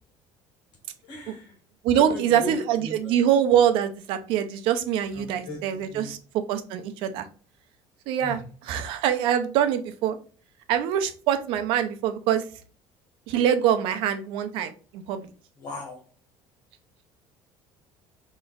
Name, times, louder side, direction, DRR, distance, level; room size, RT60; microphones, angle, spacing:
voice 1, 1.0-1.6 1.9-3.1 5.1-6.2 8.2-8.4 15.6-16.0, left 2 dB, 50° left, 0 dB, 1.6 m, -38 dB
voice 2, 1.8-6.2 6.5-7.3 8.1-10.2 10.7-12.4 13.3-15.3, right 9 dB, 65° right, 8 dB, 0.7 m, -24 dB
4.0 x 3.1 x 2.5 m, 0.39 s
cardioid pair, 155°, 9 cm